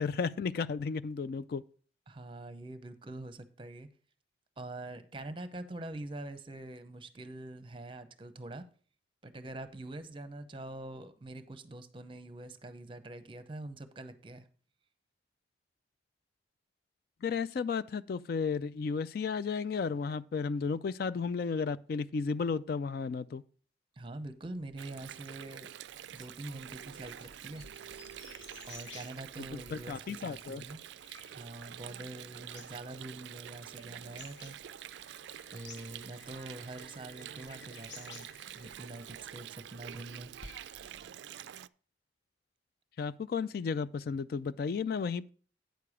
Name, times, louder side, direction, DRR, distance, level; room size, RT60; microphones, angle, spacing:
voice 1, 0.0-1.6 17.2-23.4 29.5-30.6 43.0-45.3, left 5 dB, 50° left, 0.3 m, -33 dB
voice 2, 2.1-3.9 4.6-8.6 9.2-14.5 24.0-25.7 26.1-27.7 28.6-30.8 31.3-34.6 35.5-38.3 38.5-40.3, right 2 dB, 25° right, 0.7 m, -45 dB
Water, 24.8-41.7, right 10 dB, 70° right, 0.3 m, -47 dB
sound 1, 25.8-41.1, left 4 dB, 75° left, 0.9 m, -56 dB
9.3 x 6.7 x 4.8 m
head